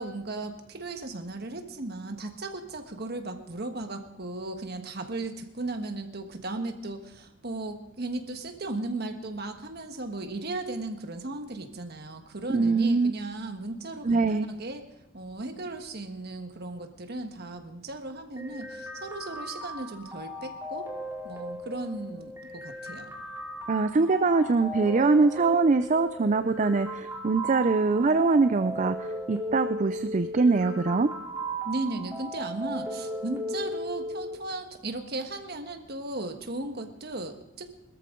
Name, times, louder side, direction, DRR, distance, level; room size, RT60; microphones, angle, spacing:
voice 1, 0.0-14.8 15.1-20.9 21.2-23.1 31.6-37.7, right 2 dB, 55° right, 6 dB, 1.4 m, -36 dB
voice 2, 12.5-13.1 14.0-14.5 23.7-31.1, right 3 dB, 40° right, 10 dB, 0.4 m, -23 dB
sound 1, 18.4-34.4, equal, 15° right, 2.5 m, -37 dB
20.5 x 13.5 x 3.8 m, 0.83 s
head